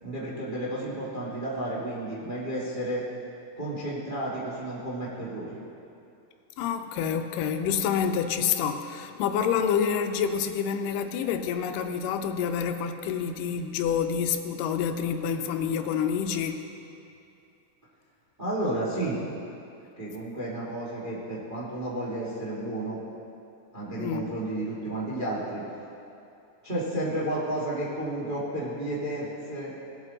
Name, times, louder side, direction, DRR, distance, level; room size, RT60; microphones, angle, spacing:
voice 1, 0.0-3.0 3.6-5.6 18.4-19.2 20.0-23.0 23.7-25.6 26.6-29.7, right 1 dB, 25° right, -6 dB, 1.0 m, -32 dB
voice 2, 6.6-16.6 24.0-24.3, left 7 dB, 85° left, 7 dB, 2.3 m, -28 dB
18.0 x 8.1 x 3.9 m, 2.7 s
omnidirectional pair, 3.8 m